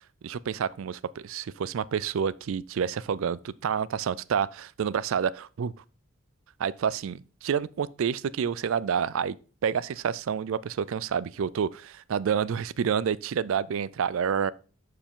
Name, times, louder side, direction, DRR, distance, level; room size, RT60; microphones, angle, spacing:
voice 1, 0.2-5.7 6.6-9.4 9.6-14.5, right 7 dB, 65° right, 0.3 m, -28 dB
11.5 x 4.8 x 3.7 m
head